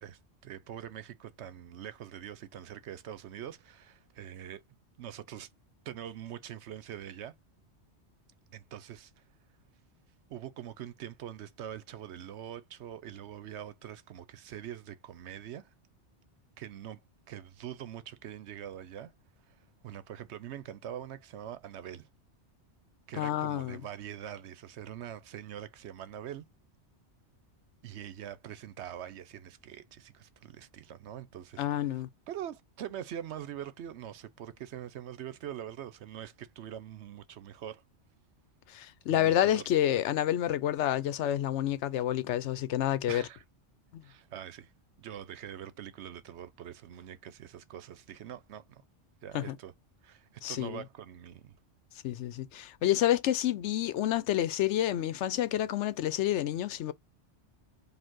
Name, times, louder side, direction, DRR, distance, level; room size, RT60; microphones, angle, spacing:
voice 1, 0.0-4.6 5.0-5.5 5.9-7.3 8.5-9.2 10.3-15.7 16.6-17.0 17.3-19.1 19.5-19.6 19.8-22.1 23.1-26.4 27.8-31.6 31.9-37.8 39.1-39.7 43.1-43.4 44.0-44.7 45.0-48.8 49.2-49.7 50.0-51.5, right 10 dB, 75° right, 0.9 m, -43 dB
voice 2, 23.2-23.8 31.6-32.1 38.7-43.2 43.9-44.0 49.3-49.6 50.4-50.8 52.0-56.9, left 12 dB, 85° left, 0.9 m, -29 dB
5.1 x 2.5 x 3.7 m
omnidirectional pair, 1.2 m